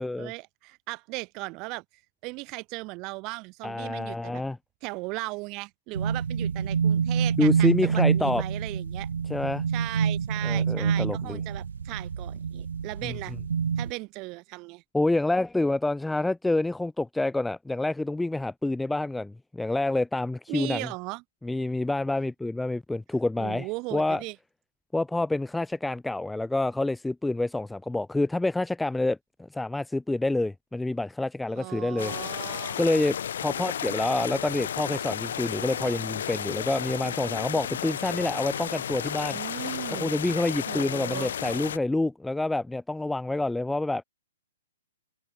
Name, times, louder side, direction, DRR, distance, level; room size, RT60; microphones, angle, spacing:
voice 1, 0.0-1.8 2.2-4.4 4.8-9.1 9.7-13.4 13.8-14.8 20.5-21.2 23.4-24.4 31.6-32.8 39.3-40.1 40.7-41.3, right 26 dB, 35° right, 7.2 m, -37 dB
voice 2, 3.6-4.6 7.4-8.4 9.3-9.6 10.4-11.4 13.0-13.1 14.9-20.9 21.4-24.2 24.9-29.2 29.5-32.1 32.8-39.4 39.9-44.0, left 2 dB, 5° left, 0.8 m, -27 dB
sound 1, 5.9-13.9, right 6 dB, 75° right, 0.3 m, -27 dB
sound 2, 32.0-41.8, left 9 dB, 65° left, 1.2 m, -33 dB
hypercardioid pair, 125°, 0 cm